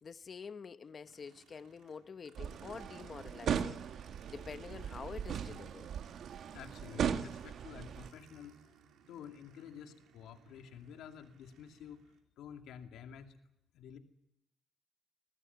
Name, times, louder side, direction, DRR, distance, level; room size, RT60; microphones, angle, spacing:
voice 1, 0.0-3.8 4.3-5.9, left 5 dB, 45° left, 1.1 m, -47 dB
Aircraft, 1.0-12.2, right 7 dB, 80° right, 3.7 m, -62 dB
sound 1, 2.4-8.1, right 8 dB, 65° right, 1.5 m, -38 dB
voice 2, 6.5-8.6 9.1-12.0 12.4-13.4 13.7-14.0, left 8 dB, 85° left, 2.4 m, -50 dB
20.5 x 20.0 x 9.3 m
cardioid pair, 90°, 0 cm